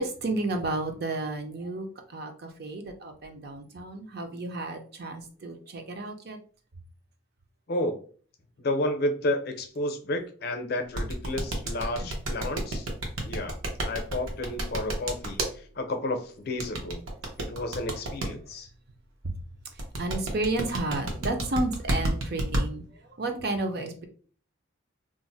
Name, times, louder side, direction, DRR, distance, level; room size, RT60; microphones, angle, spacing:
voice 1, 0.0-6.4 12.0-12.2 17.1-17.2 19.2-19.3 19.7-24.1, right 2 dB, 50° right, 5 dB, 0.5 m, -32 dB
voice 2, 8.6-12.9 13.2-13.5 13.8-15.4 15.8-17.0 17.4-18.7, left 1 dB, 50° left, 6 dB, 0.5 m, -31 dB
sound 1, 11.0-15.5 16.6-18.3 19.8-22.6, right 1 dB, 80° right, 0.8 m, -29 dB
2.5 x 2.0 x 3.9 m, 0.42 s
head